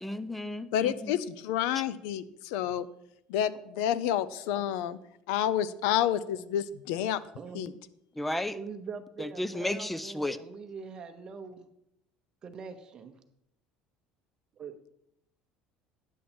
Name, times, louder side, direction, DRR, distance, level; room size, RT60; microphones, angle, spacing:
voice 1, 0.0-1.1 8.2-8.6 9.2-10.4, left 1 dB, 5° left, 15 dB, 0.4 m, -33 dB
voice 2, 0.7-2.9 3.3-5.0 5.3-7.2 7.5-7.7, left 10 dB, 85° left, 17 dB, 0.5 m, -29 dB
voice 3, 7.4-7.8 8.5-11.7 12.4-13.1 14.5-14.8, right 5 dB, 30° right, 7 dB, 0.8 m, -43 dB
9.9 x 7.4 x 4.3 m, 0.80 s
cardioid pair, 160°, 3 cm